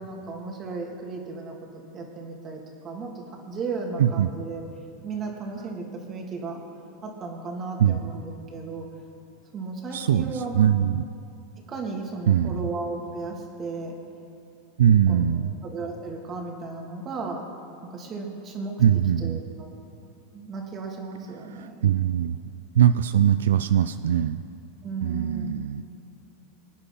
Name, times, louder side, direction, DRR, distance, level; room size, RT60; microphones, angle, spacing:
voice 1, 0.0-4.6 5.0-6.6 7.0-8.9 9.5-10.6 11.6-14.0 15.1-17.5 17.9-18.8 19.2-19.8 20.3-21.9 24.8-25.6, right 3 dB, 35° right, 1 dB, 2.9 m, -35 dB
voice 2, 9.9-11.0 12.3-12.7 14.8-15.5 18.8-19.4 21.6-22.4 22.8-24.4 25.0-25.8, right 9 dB, 85° right, 12 dB, 0.4 m, -21 dB
24.0 x 9.6 x 4.2 m, 2.8 s
hypercardioid pair, 110°, 0 cm